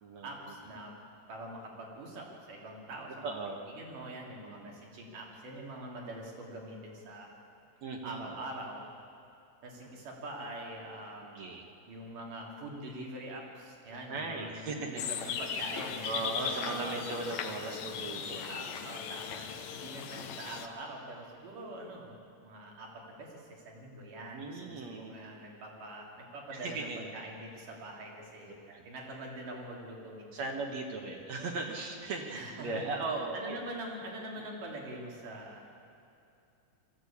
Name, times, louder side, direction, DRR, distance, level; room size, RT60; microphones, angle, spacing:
voice 1, 0.2-0.9 1.3-3.4 3.8-7.3 8.0-8.9 9.6-11.5 11.9-16.2 16.7-17.0 18.5-22.1 22.4-30.6 32.3-32.8 33.3-35.6, right 1 dB, 80° right, -1 dB, 4.6 m, -44 dB
voice 2, 3.2-3.6 4.4-4.8 7.8-8.4 11.2-11.6 14.1-15.0 16.0-18.9 24.3-25.1 26.5-27.1 28.7-28.9 30.3-33.6 34.4-34.5, right 3 dB, 60° right, 1 dB, 2.6 m, -38 dB
sound 1, 15.0-20.7, left 7 dB, 65° left, 2.1 m, -38 dB
21.5 x 14.5 x 8.6 m, 2.7 s
omnidirectional pair, 3.6 m